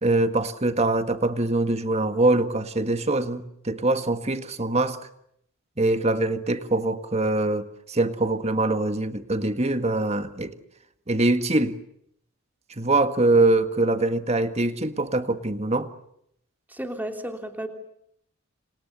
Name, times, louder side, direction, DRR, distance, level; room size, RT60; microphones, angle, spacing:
voice 1, 0.0-5.0 5.8-10.6 11.1-11.8 12.8-15.9, right 2 dB, 30° right, 1.7 m, -23 dB
voice 2, 16.7-17.7, right 1 dB, 10° right, 3.2 m, -33 dB
29.5 x 28.0 x 7.0 m
head